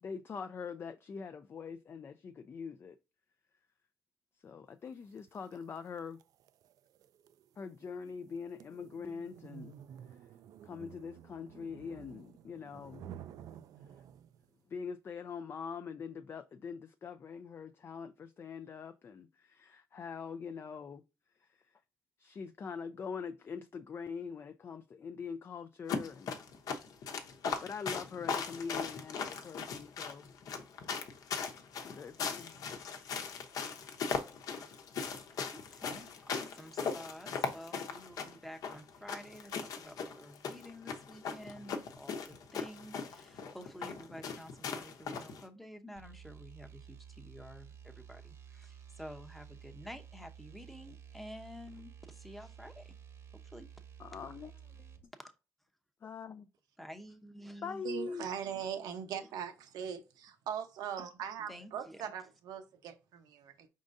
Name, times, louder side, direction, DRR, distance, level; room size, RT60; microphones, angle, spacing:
voice 1, 0.0-3.0 4.4-6.2 7.6-9.7 10.6-13.1 14.7-21.0 21.4-21.6 22.2-26.4 27.6-30.3 31.8-32.6 54.0-55.0 56.0-56.5 57.6-58.3, left 5 dB, 35° left, 0.3 m, -43 dB
sound 1, 5.2-14.5, right 9 dB, 70° right, 0.4 m, -53 dB
sound 2, 25.9-45.4, left 5 dB, 70° left, 0.8 m, -39 dB
voice 2, 35.5-53.0 53.3-53.7 56.8-57.8 61.5-62.1, equal, ahead, 0.7 m, -50 dB
sound 3, 46.0-55.0, right 8 dB, 45° right, 0.9 m, -53 dB
voice 3, 57.8-63.7, right 8 dB, 85° right, 0.9 m, -40 dB
5.2 x 3.7 x 2.6 m
cardioid pair, 120°, 7 cm